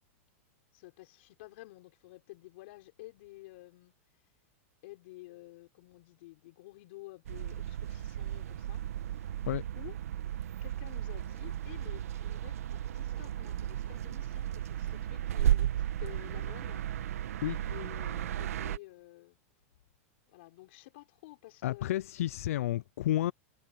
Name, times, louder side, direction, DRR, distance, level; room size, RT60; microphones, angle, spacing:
voice 1, 0.7-3.9 4.8-8.8 9.1-9.3 9.8-10.0 10.6-16.9 17.3-17.4 17.7-19.4 20.3-22.0, left 20 dB, 50° left, 6.2 m, -51 dB
sound 1, 7.3-18.8, right 11 dB, 80° right, 1.5 m, -34 dB
voice 2, 21.6-23.3, left 13 dB, 75° left, 0.4 m, -31 dB
supercardioid pair, 160°, 8 cm